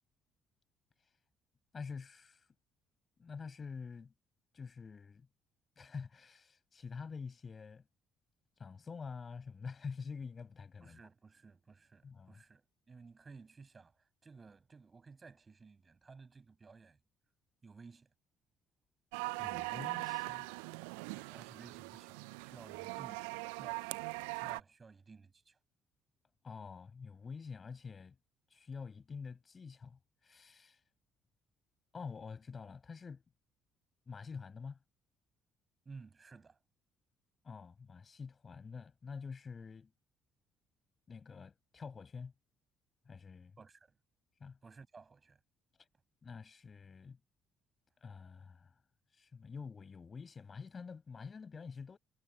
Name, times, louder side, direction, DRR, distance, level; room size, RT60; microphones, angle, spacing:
voice 1, 1.7-2.5 3.2-4.1 4.5-5.3 5.8-7.8 8.6-11.0 12.0-12.4 19.4-20.5 26.4-28.2 28.5-30.8 31.9-33.2 34.1-34.8 37.4-39.9 41.1-42.3 43.0-43.6 44.4-44.6 45.8-45.9 46.2-47.2 48.0-48.7 49.1-52.0, left 5 dB, 40° left, 6.1 m, -47 dB
voice 2, 10.8-17.0 17.6-18.1 21.1-25.6 35.9-36.6 43.6-44.0 44.6-45.4, right 4 dB, 35° right, 7.1 m, -56 dB
sound 1, 19.1-24.6, right 27 dB, 80° right, 0.4 m, -41 dB
hypercardioid pair, 50°, 0 cm